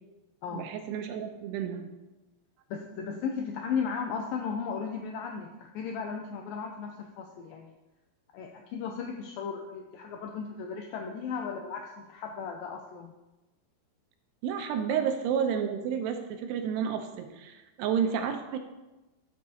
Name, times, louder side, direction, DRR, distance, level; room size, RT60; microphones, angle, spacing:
voice 1, 0.5-1.9 14.4-18.6, right 7 dB, 85° right, 6 dB, 2.8 m, -31 dB
voice 2, 2.7-7.7 8.3-13.1, left 6 dB, 85° left, 3 dB, 2.0 m, -35 dB
12.5 x 6.6 x 2.8 m, 1.1 s
omnidirectional pair, 4.7 m